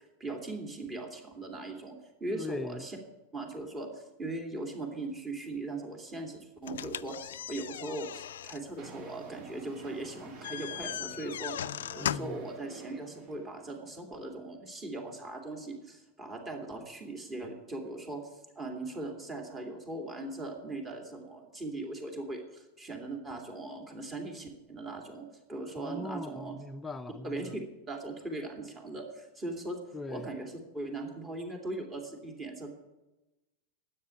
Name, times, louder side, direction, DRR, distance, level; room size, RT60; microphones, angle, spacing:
voice 1, 0.2-3.0 3.3-26.5 27.2-27.5 27.9-29.8 30.1-32.7, right 2 dB, 20° right, 2.6 m, -39 dB
voice 2, 2.3-2.9 12.0-12.4 25.8-27.5 29.9-30.3, left 2 dB, 10° left, 0.6 m, -40 dB
sound 1, 6.6-12.5, left 10 dB, 85° left, 0.3 m, -39 dB
sound 2, 8.8-13.8, right 3 dB, 45° right, 1.5 m, -51 dB
9.7 x 8.8 x 8.3 m
hypercardioid pair, 115°, 0 cm